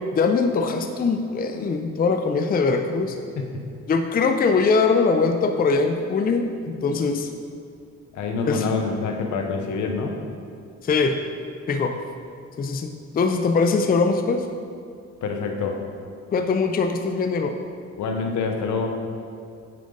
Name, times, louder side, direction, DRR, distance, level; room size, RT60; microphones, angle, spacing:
voice 1, 0.1-3.2 3.9-7.3 8.4-8.7 10.8-11.2 11.7-11.9 12.6-14.5 16.3-17.5, left 4 dB, 30° left, 6 dB, 0.5 m, -22 dB
voice 2, 8.1-10.2 15.2-15.8 18.0-19.0, left 4 dB, 75° left, 3 dB, 1.0 m, -26 dB
8.8 x 5.1 x 3.9 m, 2.3 s
cardioid pair, 90°, 30 cm